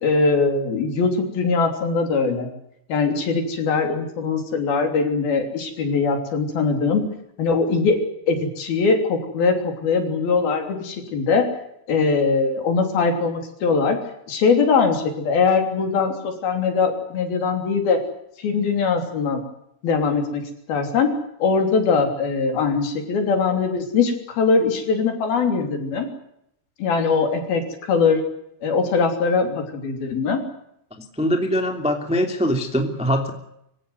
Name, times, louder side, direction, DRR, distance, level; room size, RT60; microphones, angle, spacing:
voice 1, 0.0-2.5 2.9-8.0 8.3-11.5 11.9-14.0 14.3-18.0 18.4-19.4 19.8-20.4 20.7-21.1 21.4-26.1 26.8-28.2 28.6-30.4, left 4 dB, 55° left, 5 dB, 4.8 m, -21 dB
voice 2, 31.2-33.3, equal, ahead, 5 dB, 1.4 m, -22 dB
25.0 x 16.0 x 9.6 m, 0.78 s
omnidirectional pair, 5.5 m